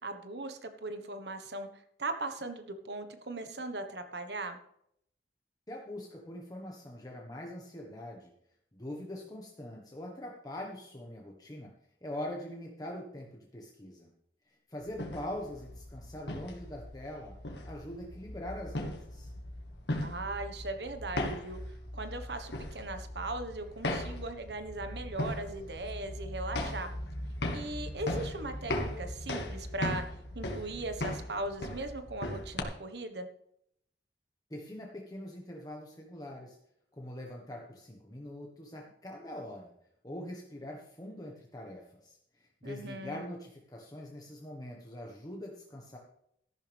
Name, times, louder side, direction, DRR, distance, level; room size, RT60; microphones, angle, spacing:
voice 1, 0.0-1.7 2.0-4.6 20.0-21.6 21.9-26.9 27.5-30.0 30.3-33.3 42.6-43.2, right 2 dB, 65° right, 8 dB, 1.4 m, -38 dB
voice 2, 5.7-8.3 8.7-11.7 12.0-14.1 14.5-17.3 17.6-19.3 34.5-36.6 36.9-39.7 40.0-46.0, left 1 dB, 20° left, -1 dB, 1.4 m, -43 dB
sound 1, 14.9-32.6, left 1 dB, 70° left, 1.9 m, -38 dB
14.0 x 11.5 x 3.5 m, 0.72 s
head